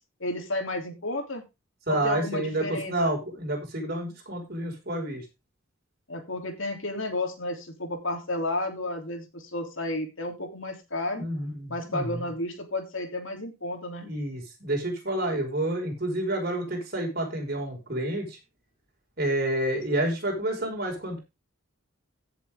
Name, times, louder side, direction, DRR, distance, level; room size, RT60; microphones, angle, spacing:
voice 1, 0.2-1.4 1.9-3.2 6.1-11.3 11.7-14.1, left 2 dB, 70° left, 5 dB, 3.3 m, -32 dB
voice 2, 1.9-5.2 11.2-12.2 14.0-18.4 19.2-21.2, right 1 dB, 50° right, 1 dB, 5.8 m, -29 dB
16.0 x 7.5 x 3.8 m, 0.26 s
head